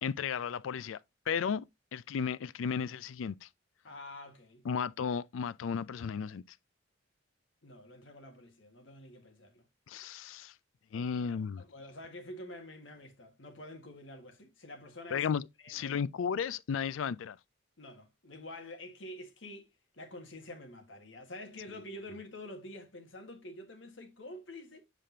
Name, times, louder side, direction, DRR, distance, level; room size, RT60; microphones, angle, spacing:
voice 1, 0.0-1.0 1.3-1.6 1.9-3.5 4.6-6.4 9.9-10.5 10.9-11.7 15.1-17.4, left 7 dB, 90° left, 0.4 m, -34 dB
voice 2, 3.8-4.7 7.6-9.6 10.9-15.3 15.6-16.0 17.8-24.8, left 1 dB, 70° left, 1.6 m, -48 dB
7.6 x 5.0 x 2.7 m
head